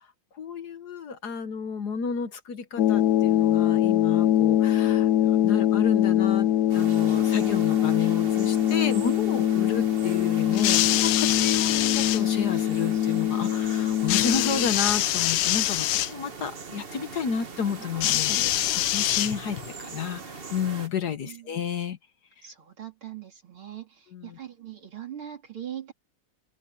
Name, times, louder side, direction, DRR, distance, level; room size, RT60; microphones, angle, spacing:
voice 1, 0.3-22.0 24.1-24.4, left 6 dB, 55° left, 1.5 m, -31 dB
sound 1, 2.8-14.7, left 11 dB, 90° left, 0.8 m, -23 dB
sound 2, 6.7-20.9, right 4 dB, 30° right, 1.2 m, -40 dB
sound 3, 10.5-12.2 14.1-16.1 18.0-19.7 20.7-20.8, left 14 dB, 75° left, 1.2 m, -25 dB
voice 2, 21.2-21.6 22.4-25.9, right 10 dB, 80° right, 4.4 m, -41 dB
omnidirectional pair, 2.3 m